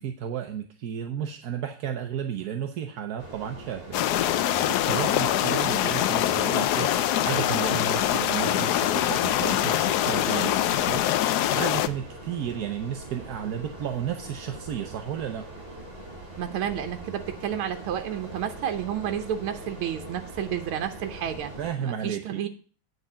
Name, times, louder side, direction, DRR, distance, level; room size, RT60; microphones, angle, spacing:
voice 1, 0.0-4.0 4.4-15.5 21.6-22.4, right 8 dB, 60° right, 5 dB, 1.0 m, -33 dB
sound 1, 3.2-21.8, right 2 dB, 30° right, 3.5 m, -42 dB
sound 2, 3.9-11.9, left 12 dB, 85° left, 0.8 m, -24 dB
voice 2, 16.4-21.5 21.8-22.5, right 9 dB, 80° right, 6 dB, 1.7 m, -31 dB
9.3 x 4.7 x 7.4 m, 0.41 s
omnidirectional pair, 2.3 m